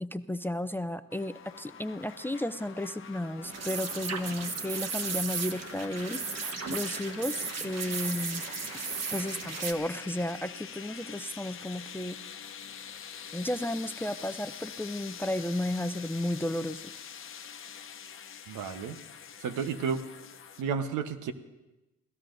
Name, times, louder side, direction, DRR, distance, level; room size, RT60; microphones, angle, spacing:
voice 1, 0.0-6.2 6.7-8.5 9.1-12.2 13.3-16.9, left 1 dB, 5° left, 13 dB, 0.4 m, -33 dB
sound 1, 1.1-20.6, left 7 dB, 45° left, 0.9 m, -45 dB
sound 2, 3.4-9.7, right 5 dB, 55° right, 1.3 m, -35 dB
voice 2, 18.5-19.0 19.4-20.0 20.6-21.3, right 6 dB, 80° right, 9 dB, 1.1 m, -32 dB
27.5 x 17.5 x 2.6 m, 1.0 s
cardioid pair, 90°, 30 cm